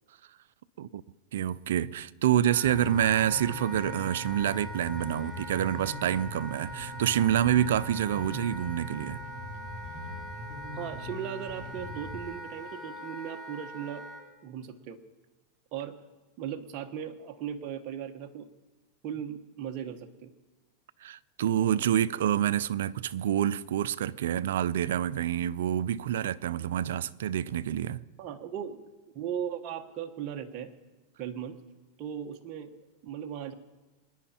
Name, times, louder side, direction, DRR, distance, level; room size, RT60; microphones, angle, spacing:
voice 1, 1.3-9.2 21.0-28.0, right 11 dB, 80° right, 0.5 m, -27 dB
Wind instrument woodwind instrument, 2.4-14.2, equal, ahead, 4.1 m, -43 dB
Bass guitar, 2.6-12.2, left 1 dB, 20° left, 6.6 m, -42 dB
voice 2, 10.7-14.1 14.4-15.0 15.7-16.0 16.4-18.5 19.0-20.3 28.2-28.8 29.1-30.7 31.2-31.6 32.0-32.7 33.0-33.5, right 9 dB, 45° right, 1.3 m, -37 dB
26.5 x 10.0 x 4.4 m
supercardioid pair, 125°, 0 cm